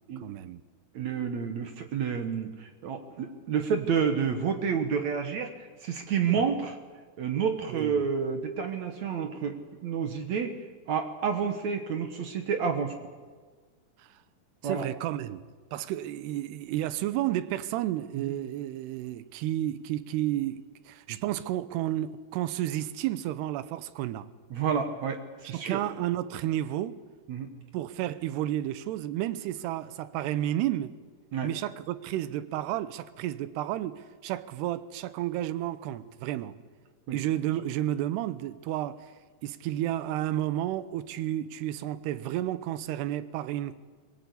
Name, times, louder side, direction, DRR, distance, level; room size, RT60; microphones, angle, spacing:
voice 1, 0.2-0.6 6.3-6.5 7.7-7.9 14.6-15.4 15.7-24.3 25.5-27.0 27.7-31.0 31.4-36.5 37.1-39.1 39.4-43.8, right 13 dB, 85° right, 2.9 m, -31 dB
voice 2, 0.9-6.8 7.2-10.6 10.9-12.9 14.6-14.9 18.2-18.3 24.5-25.8 27.3-27.5 31.3-31.5 37.1-37.2, right 6 dB, 60° right, 2.0 m, -29 dB
22.0 x 20.0 x 8.4 m
omnidirectional pair, 4.7 m